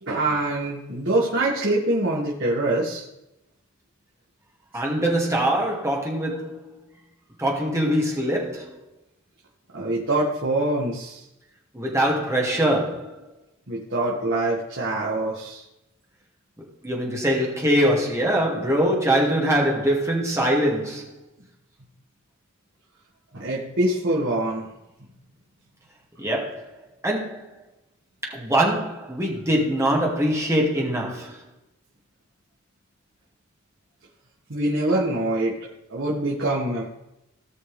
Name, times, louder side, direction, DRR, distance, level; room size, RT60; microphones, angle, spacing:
voice 1, 0.0-3.0 9.7-11.2 13.7-15.6 23.3-24.6 34.5-35.5 35.9-36.8, right 2 dB, 60° right, 2.2 m, -24 dB
voice 2, 4.7-6.7 7.4-8.8 11.7-13.2 16.8-21.1 26.2-26.6 27.0-27.5 28.2-31.4, right 1 dB, 15° right, 2.4 m, -23 dB
18.0 x 6.2 x 3.4 m
head